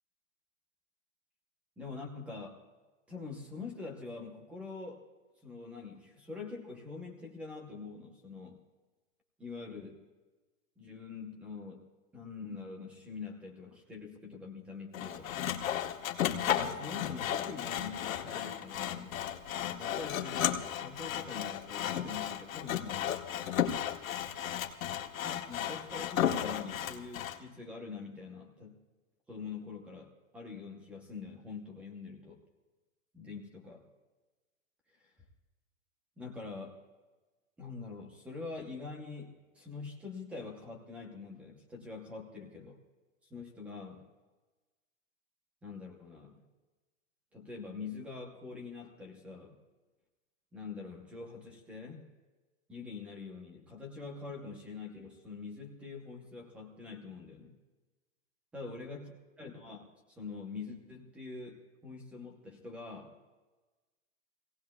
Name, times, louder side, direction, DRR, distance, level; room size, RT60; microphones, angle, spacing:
voice 1, 1.8-2.6 3.1-5.0 5.4-8.6 9.4-10.0 10.8-11.9 12.1-15.3 16.1-16.3 16.6-19.2 19.8-23.2 25.2-28.8 29.3-32.4 33.1-33.8 34.9-35.1 36.2-36.8 37.6-42.8 43.3-44.1 45.6-46.4 47.3-49.6 50.5-52.1 52.7-57.5 58.5-63.1, left 4 dB, 5° right, 2 dB, 0.7 m, -45 dB
Sawing, 14.9-27.4, left 10 dB, 85° left, 1.5 m, -34 dB
25.0 x 17.5 x 2.3 m, 1.2 s
supercardioid pair, 175°, 40 cm